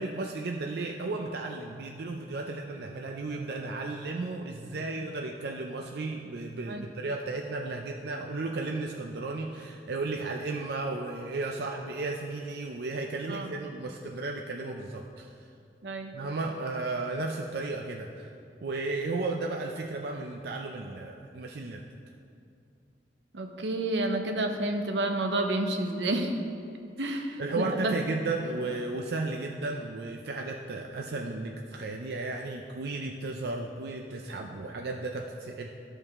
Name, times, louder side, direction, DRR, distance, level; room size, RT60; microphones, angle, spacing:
voice 1, 0.0-15.3 16.1-18.3 18.6-21.9 27.1-35.7, right 3 dB, 65° right, 2 dB, 0.5 m, -34 dB
voice 2, 15.8-16.2 23.3-26.3 27.0-27.9, right 2 dB, 85° right, 4 dB, 0.8 m, -30 dB
13.5 x 5.4 x 3.6 m, 2.6 s
head